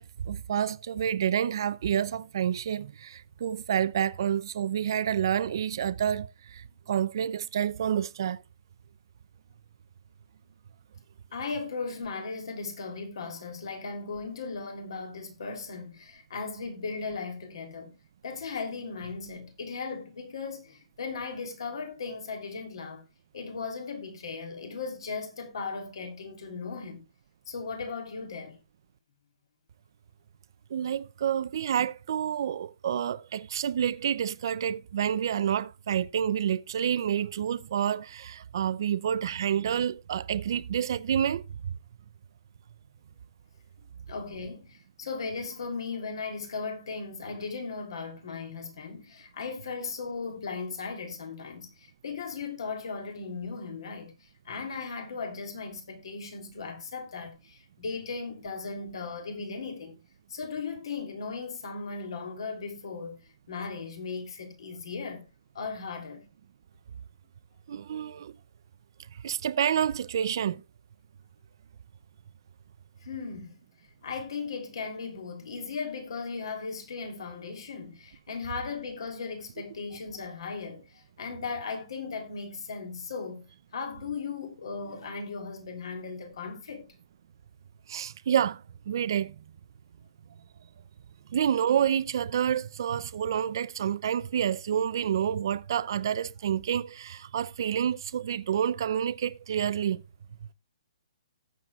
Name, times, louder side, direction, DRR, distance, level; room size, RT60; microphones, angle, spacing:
voice 1, 0.0-8.4 30.7-41.8 67.7-68.4 69.2-70.6 87.9-89.4 91.3-100.0, right 9 dB, 45° right, 0.5 m, -28 dB
voice 2, 11.3-17.9 18.2-23.0 23.3-27.0 27.5-28.6 44.1-60.0 60.3-63.2 63.5-65.3 65.5-66.2 73.0-73.5 74.0-83.4 83.7-86.9 91.2-91.4, left 4 dB, 55° left, 3.1 m, -37 dB
18.0 x 7.6 x 2.4 m
hypercardioid pair, 170°, 3 cm